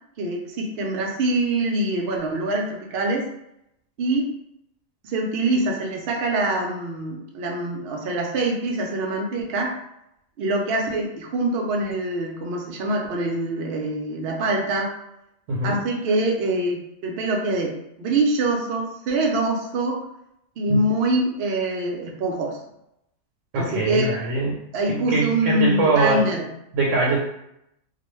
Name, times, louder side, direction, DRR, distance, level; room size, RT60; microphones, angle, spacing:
voice 1, 0.2-3.3 4.0-4.2 5.0-9.7 10.4-14.9 15.6-17.7 18.0-20.0 20.6-22.6 23.5-24.3 24.7-26.5, right 2 dB, 65° right, 0 dB, 0.7 m, -24 dB
voice 2, 15.5-15.8 20.7-20.8 23.5-24.6 24.9-26.3 26.7-27.2, right 3 dB, 85° right, -3 dB, 1.0 m, -22 dB
2.3 x 2.2 x 3.0 m, 0.80 s
omnidirectional pair, 1.3 m